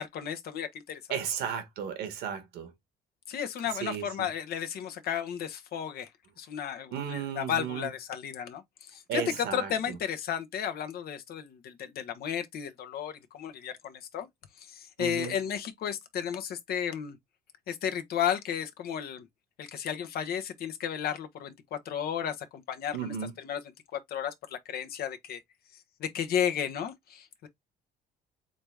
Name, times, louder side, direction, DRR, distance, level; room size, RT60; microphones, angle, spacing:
voice 1, 0.0-1.0 3.3-6.1 6.4-14.3 14.6-17.2 17.7-19.2 19.6-23.1 23.4-23.6 23.9-25.4 26.0-27.5, left 9 dB, 65° left, 1.0 m, -33 dB
voice 2, 1.1-2.7 3.7-4.3 6.9-7.9 9.1-10.0 15.0-15.4 22.9-23.3, right 8 dB, 80° right, 1.5 m, -34 dB
3.8 x 3.5 x 3.3 m
cardioid pair, 110°, 17 cm